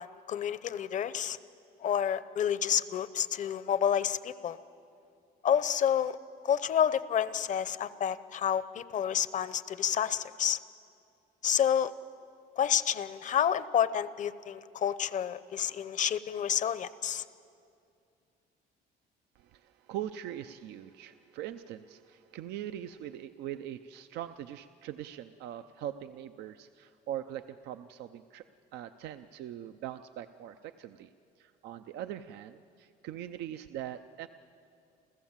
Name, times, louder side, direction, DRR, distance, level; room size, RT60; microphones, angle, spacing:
voice 1, 0.0-1.4 1.8-4.6 5.4-6.2 6.4-10.6 11.4-11.9 12.6-17.2, left 9 dB, 45° left, 15 dB, 0.7 m, -29 dB
voice 2, 19.4-28.5 28.7-31.1 31.4-34.3, right 11 dB, 80° right, 10 dB, 0.6 m, -41 dB
29.5 x 14.5 x 7.4 m, 2.5 s
cardioid pair, 110°, 17 cm